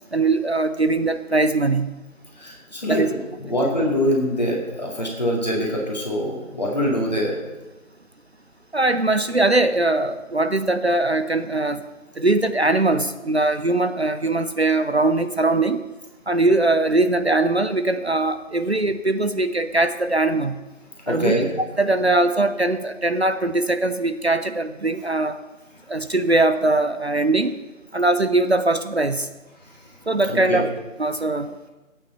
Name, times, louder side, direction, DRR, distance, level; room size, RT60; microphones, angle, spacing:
voice 1, 0.1-1.9 2.9-3.1 8.7-11.8 12.2-15.8 16.3-20.6 21.1-21.3 21.8-25.4 25.9-27.6 27.9-29.3 30.1-30.7 31.0-31.5, right 2 dB, 55° right, 11 dB, 0.6 m, -21 dB
voice 2, 2.4-3.2 3.4-7.4 21.1-21.5 30.3-30.6, equal, 30° left, -2 dB, 2.2 m, -24 dB
13.5 x 8.8 x 4.2 m, 1.1 s
figure-of-eight pair, 175°, 40 cm